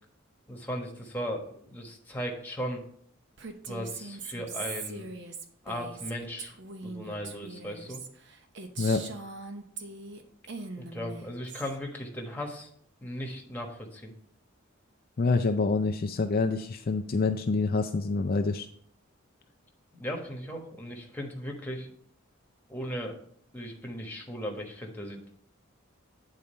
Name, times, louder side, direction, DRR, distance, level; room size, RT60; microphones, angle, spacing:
voice 1, 0.5-2.8 3.7-5.1 5.6-6.5 6.8-8.0 10.8-12.7 13.0-14.1 19.9-21.9 22.7-23.2 23.5-25.4, equal, 10° left, 0 dB, 1.2 m, -37 dB
Female speech woman speaking, 3.4-10.2 10.5-11.8, right 4 dB, 60° right, 0.8 m, -41 dB
voice 2, 15.2-18.7, left 3 dB, 45° left, 6 dB, 0.4 m, -27 dB
8.7 x 4.0 x 5.4 m, 0.64 s
head